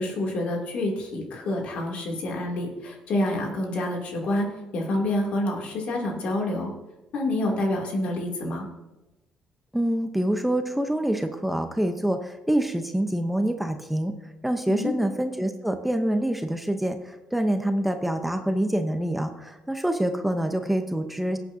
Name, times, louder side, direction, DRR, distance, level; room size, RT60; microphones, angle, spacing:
voice 1, 0.0-4.5 4.7-6.7 7.1-8.7 14.7-14.9, left 1 dB, 65° left, 0 dB, 2.8 m, -27 dB
voice 2, 9.7-14.1 14.4-21.4, right 1 dB, 5° right, 6 dB, 0.8 m, -26 dB
18.5 x 8.4 x 2.8 m, 1.0 s
cardioid pair, 100°, 2 cm